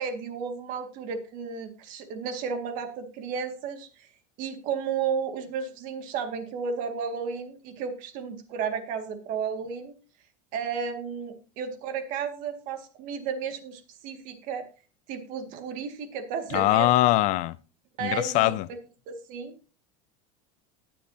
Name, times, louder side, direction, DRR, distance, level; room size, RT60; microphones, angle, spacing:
voice 1, 0.0-4.1 4.4-9.9 10.5-14.7 15.1-16.9 18.0-18.5 19.1-19.5, right 6 dB, 55° right, 2.1 m, -33 dB
voice 2, 16.5-17.6 18.0-18.7, left 17 dB, 50° left, 0.5 m, -22 dB
20.0 x 7.4 x 2.8 m
supercardioid pair, 135°, 16 cm